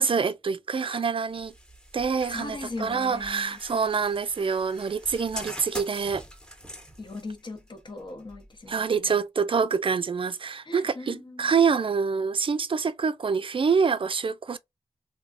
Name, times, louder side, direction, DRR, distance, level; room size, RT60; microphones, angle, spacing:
voice 1, 0.0-1.5 1.9-6.2 8.7-14.6, right 5 dB, 50° right, 0.4 m, -26 dB
sound 1, 1.3-9.2, equal, 5° left, 1.1 m, -44 dB
voice 2, 2.3-3.6 7.0-9.1 10.7-11.5, left 3 dB, 40° left, 0.9 m, -39 dB
3.3 x 2.8 x 2.5 m
wide cardioid pair, 75°, 12 cm